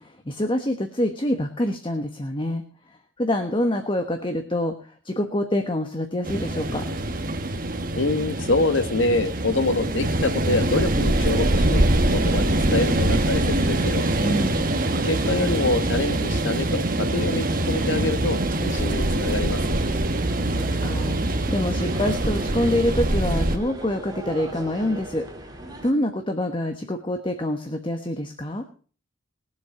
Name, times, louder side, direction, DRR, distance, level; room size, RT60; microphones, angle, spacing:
voice 1, 0.0-2.6 3.2-4.7 5.0-6.8 14.2-14.7 20.5-25.2 25.8-28.6, left 1 dB, 25° left, 6 dB, 1.3 m, -26 dB
sound 1, 6.2-23.6, right 1 dB, 45° right, 1.3 m, -24 dB
voice 2, 8.0-11.8 12.1-14.0 15.0-19.6, left 2 dB, 75° left, 9 dB, 1.6 m, -25 dB
sound 2, 10.4-23.2, right 3 dB, 60° right, 2.1 m, -35 dB
sound 3, 11.3-25.9, right 1 dB, 20° right, 2.6 m, -40 dB
20.5 x 7.6 x 4.9 m, 0.40 s
head